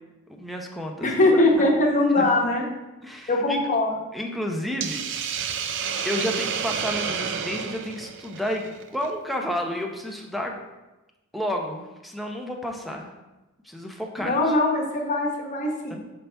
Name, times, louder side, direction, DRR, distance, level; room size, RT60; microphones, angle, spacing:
voice 1, 0.3-1.6 2.2-2.3 2.6-3.6 4.1-5.5 6.0-10.6 11.3-13.1 13.6-14.5 15.9-16.0, equal, ahead, 1 dB, 0.6 m, -31 dB
voice 2, 1.0-2.7 3.3-3.9 14.2-16.0, left 2 dB, 35° left, 0 dB, 1.0 m, -21 dB
Hiss, 4.8-9.1, right 7 dB, 55° right, 0.4 m, -30 dB
5.8 x 5.4 x 3.3 m, 1.1 s
head